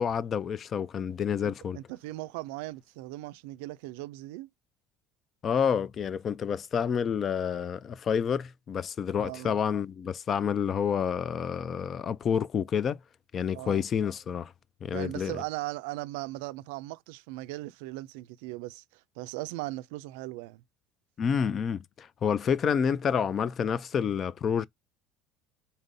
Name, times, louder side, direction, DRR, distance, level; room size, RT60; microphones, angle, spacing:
voice 1, 0.0-1.8 5.4-13.0 13.3-14.5 14.8-15.4 21.2-24.7, left 7 dB, 40° left, 0.3 m, -29 dB
voice 2, 1.4-4.5 9.2-9.6 13.5-13.8 14.9-20.6, right 18 dB, 80° right, 0.3 m, -38 dB
4.1 x 3.8 x 2.6 m
supercardioid pair, 105°, 0 cm